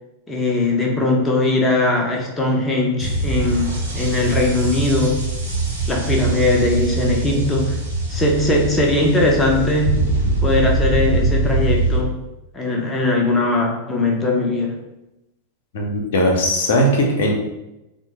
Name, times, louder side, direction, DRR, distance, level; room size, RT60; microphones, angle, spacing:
voice 1, 0.3-5.2 5.9-7.8 8.1-10.1 10.4-12.1 12.5-14.8, left 2 dB, 15° left, 0 dB, 0.7 m, -20 dB
sound 1, 3.0-12.0, right 3 dB, 75° right, 0.7 m, -22 dB
voice 2, 15.7-17.4, equal, 60° left, 1 dB, 0.6 m, -18 dB
3.4 x 2.0 x 2.9 m, 0.95 s
figure-of-eight pair, 90°, 0 cm